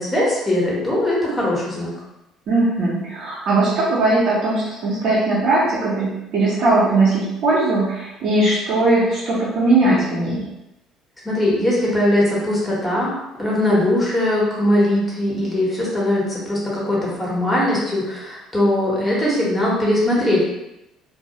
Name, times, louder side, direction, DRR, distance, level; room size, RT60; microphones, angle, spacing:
voice 1, 0.0-1.9 11.2-13.1 13.4-20.5, left 1 dB, 10° left, -5 dB, 1.0 m, -20 dB
voice 2, 2.5-10.4, right 2 dB, 60° right, -8 dB, 0.7 m, -19 dB
2.2 x 2.0 x 2.8 m, 0.90 s
supercardioid pair, 95°, 0 cm